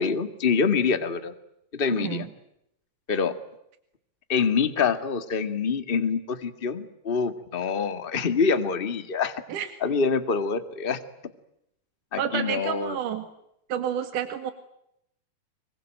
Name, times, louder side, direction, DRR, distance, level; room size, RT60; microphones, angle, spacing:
voice 1, 0.0-1.3 1.7-2.3 3.1-3.3 4.3-9.3 9.8-11.0 12.1-13.0, left 5 dB, 25° left, 9 dB, 1.4 m, -25 dB
voice 2, 1.9-2.2 9.5-9.7 12.2-13.3 13.7-14.5, right 9 dB, 80° right, 8 dB, 3.4 m, -29 dB
26.0 x 23.5 x 8.9 m, 0.78 s
omnidirectional pair, 3.7 m